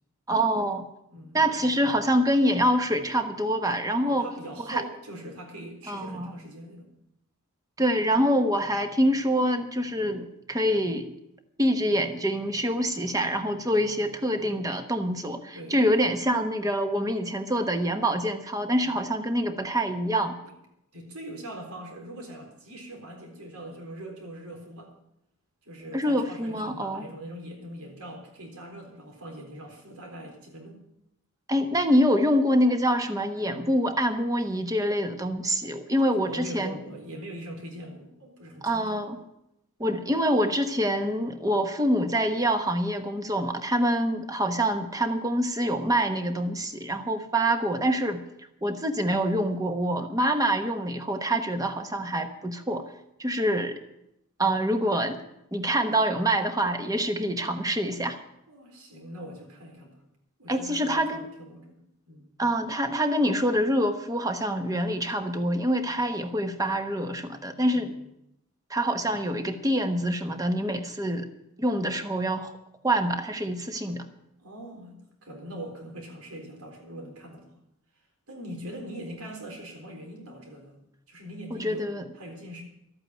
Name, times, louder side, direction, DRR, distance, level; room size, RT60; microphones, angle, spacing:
voice 1, 0.3-0.9 1.3-4.3 4.7-4.8 5.9-6.3 7.8-11.1 11.6-20.4 25.9-27.1 31.5-36.8 38.6-39.2 39.8-48.2 48.6-52.8 53.2-53.8 54.4-55.2 55.5-58.2 60.5-61.3 62.4-67.9 68.7-71.3 71.6-72.6 72.8-74.0 81.6-82.1, equal, 15° right, 7 dB, 1.1 m, -25 dB
voice 2, 4.0-6.9 15.5-15.8 18.8-19.0 20.4-20.5 20.9-24.9 25.6-30.8 36.1-38.9 58.5-60.0 60.4-61.8 62.1-62.3 67.7-68.0 74.4-77.5 78.3-80.8 81.1-81.8 82.1-82.6, right 1 dB, 90° right, 2 dB, 4.0 m, -42 dB
13.0 x 8.8 x 9.0 m, 0.81 s
head